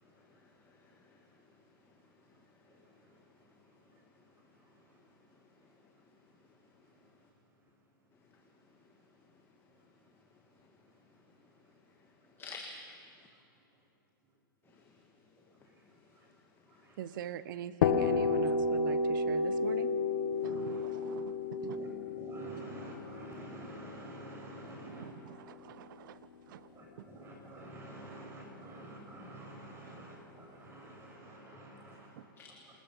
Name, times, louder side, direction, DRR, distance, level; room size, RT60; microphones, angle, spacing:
voice 1, 0.3-1.2 10.6-10.7 11.9-12.1 12.4-12.7 14.7-15.0 15.8-16.2 16.7-17.2 31.3-31.4 31.7-32.0 32.4-32.5, left 4 dB, 20° left, 2 dB, 1.8 m, -52 dB
voice 2, 17.0-19.9 20.4-21.3 21.6-21.8 24.8-26.2 26.5-26.6, right 10 dB, 65° right, 14 dB, 1.0 m, -42 dB
sound 1, 17.8-25.5, left 4 dB, 65° left, 1.7 m, -32 dB
voice 3, 20.4-20.8 21.7-21.9 22.2-25.0 26.7-32.1, right 1 dB, 20° right, -1 dB, 7.6 m, -48 dB
28.0 x 19.5 x 5.6 m, 2.5 s
hypercardioid pair, 120°, 12 cm